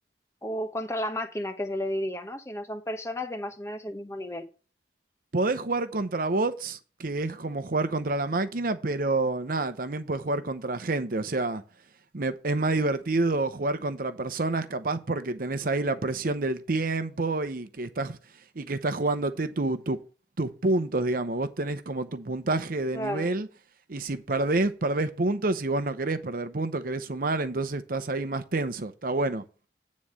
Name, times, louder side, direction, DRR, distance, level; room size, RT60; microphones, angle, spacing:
voice 1, 0.4-4.4 22.9-23.3, left 1 dB, 15° left, 0.9 m, -32 dB
voice 2, 5.3-11.6 12.1-18.2 18.6-20.0 20.4-23.5 23.9-29.4, right 2 dB, 55° right, 0.8 m, -28 dB
9.3 x 4.2 x 6.3 m
head